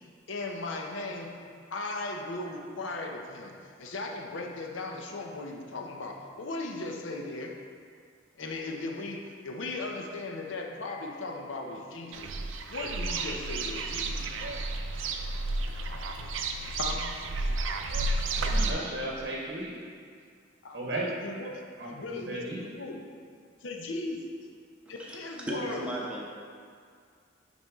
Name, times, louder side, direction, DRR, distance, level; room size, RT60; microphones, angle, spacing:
voice 1, 0.3-1.3 1.7-7.6 8.4-12.3 12.7-14.2 16.8-17.1 20.6-23.0 23.6-24.2 24.9-25.9, left 2 dB, 80° left, 2 dB, 0.7 m, -37 dB
sound 1, 12.1-18.7, right 2 dB, 80° right, 0.5 m, -31 dB
voice 2, 18.4-19.8 20.7-21.1 21.8-22.6, right 1 dB, 55° right, -3 dB, 0.8 m, -35 dB
voice 3, 25.5-26.2, right 1 dB, 5° right, -4 dB, 0.8 m, -35 dB
8.9 x 4.2 x 3.5 m, 2.1 s
head